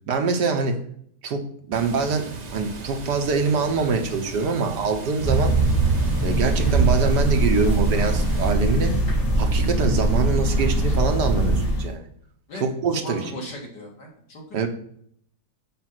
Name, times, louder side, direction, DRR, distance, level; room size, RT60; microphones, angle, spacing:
voice 1, 0.1-0.8 1.2-5.5 6.2-8.9 9.4-12.1 12.6-13.3 14.5-14.7, right 4 dB, 70° right, 4 dB, 1.6 m, -24 dB
Water, 1.7-8.5, right 3 dB, 40° right, 0.6 m, -38 dB
sound 1, 5.2-11.9, right 2 dB, 45° left, 4.0 m, -21 dB
voice 2, 12.5-14.7, left 1 dB, 75° left, -2 dB, 3.1 m, -38 dB
7.9 x 4.8 x 5.9 m, 0.65 s
omnidirectional pair, 1.9 m